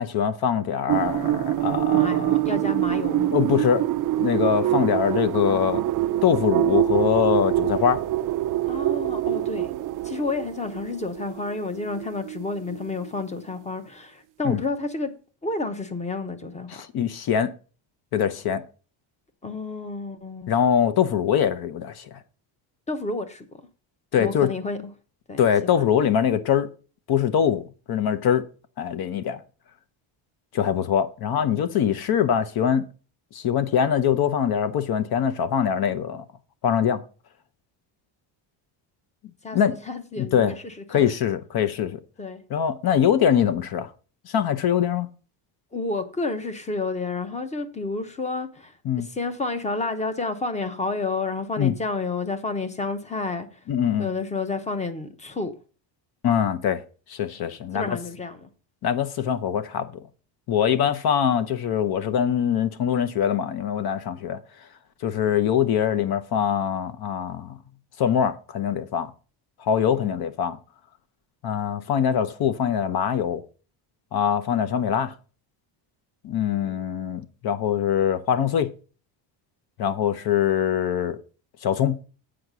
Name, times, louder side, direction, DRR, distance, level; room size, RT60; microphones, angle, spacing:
voice 1, 0.0-2.4 3.3-3.8 4.2-5.8 6.2-8.0 14.4-14.6 16.7-17.5 18.1-18.6 20.5-22.2 24.1-24.5 25.4-26.7 27.1-28.4 28.8-29.4 30.5-32.8 33.3-36.2 36.6-37.0 39.5-39.8 40.2-40.5 40.9-42.0 42.5-43.9 44.3-45.1 48.8-49.1 51.6-51.7 53.7-54.1 56.2-56.8 57.1-57.9 58.8-60.0 60.5-64.4 65.0-67.6 68.0-69.1 69.6-70.6 71.4-73.4 74.1-75.1 76.2-78.7 79.8-81.2 81.6-82.0, left 8 dB, 50° left, 0.8 m, -23 dB
sound 1, 0.9-13.2, right 14 dB, 45° right, 0.4 m, -25 dB
voice 2, 1.9-3.3 8.6-9.7 10.0-15.1 15.4-16.8 19.4-20.5 22.9-23.6 24.1-24.8 25.3-25.5 25.7-25.9 39.4-39.6 39.8-41.0 42.2-42.4 45.7-53.5 54.0-55.5 57.7-58.5 69.9-70.2 76.6-76.7, left 3 dB, 15° left, 0.8 m, -30 dB
7.8 x 4.9 x 6.6 m
cardioid pair, 145°, 49 cm